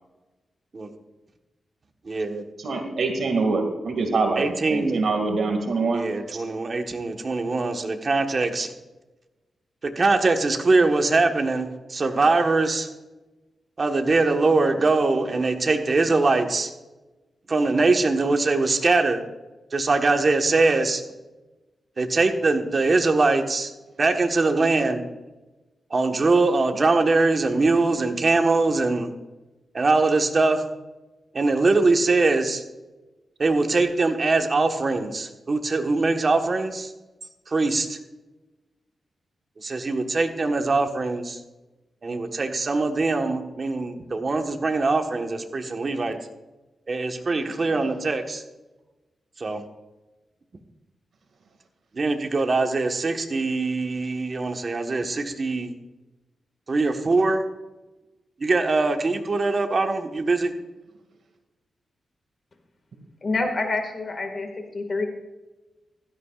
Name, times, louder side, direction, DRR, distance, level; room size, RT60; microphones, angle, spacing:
voice 1, 2.0-2.5 4.4-5.0 5.9-8.7 9.8-12.9 13.8-16.7 17.5-19.2 19.7-21.0 22.0-23.7 24.0-25.0 25.9-29.1 29.7-30.6 31.3-32.6 33.4-36.9 37.5-38.0 39.6-41.4 42.0-46.2 46.9-48.4 49.4-49.6 51.9-55.7 56.7-57.4 58.4-60.5, right 3 dB, 40° right, 5 dB, 1.4 m, -22 dB
voice 2, 2.6-6.0, right 3 dB, 70° right, 4 dB, 2.2 m, -24 dB
voice 3, 63.2-65.1, left 3 dB, 45° left, 5 dB, 2.0 m, -27 dB
16.0 x 13.0 x 2.5 m, 1.1 s
wide cardioid pair, 105°, 0 cm